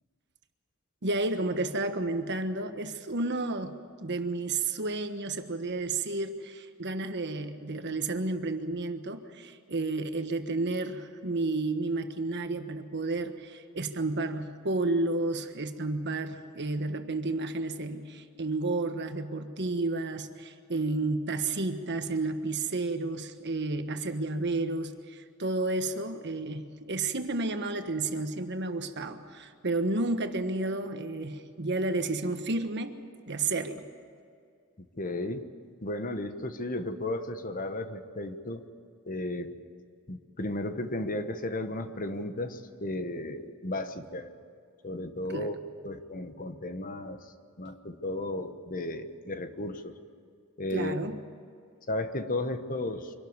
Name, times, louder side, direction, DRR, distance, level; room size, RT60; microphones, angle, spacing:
voice 1, 1.0-33.0 33.3-33.9 45.3-45.5 50.7-51.2, right 2 dB, 55° right, 8 dB, 1.4 m, -31 dB
voice 2, 35.0-35.4 35.8-38.6 39.1-39.5 40.1-44.3 44.8-45.5 45.8-47.2 47.6-49.9 50.6-50.9 51.9-53.1, left 1 dB, 40° left, 9 dB, 1.2 m, -34 dB
24.5 x 12.5 x 9.6 m, 2.3 s
head